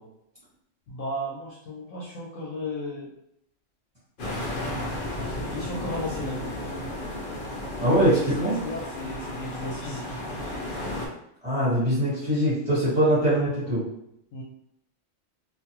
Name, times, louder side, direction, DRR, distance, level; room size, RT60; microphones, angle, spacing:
voice 1, 0.9-3.1 5.2-6.5 7.8-10.2 14.3-14.4, left 1 dB, 75° left, -5 dB, 1.0 m, -34 dB
sound 1, 4.2-11.1, left 1 dB, 50° left, 0.7 m, -33 dB
voice 2, 7.8-8.6 11.4-13.8, right 1 dB, 30° right, -11 dB, 1.3 m, -22 dB
2.5 x 2.3 x 2.9 m, 0.76 s
omnidirectional pair, 1.3 m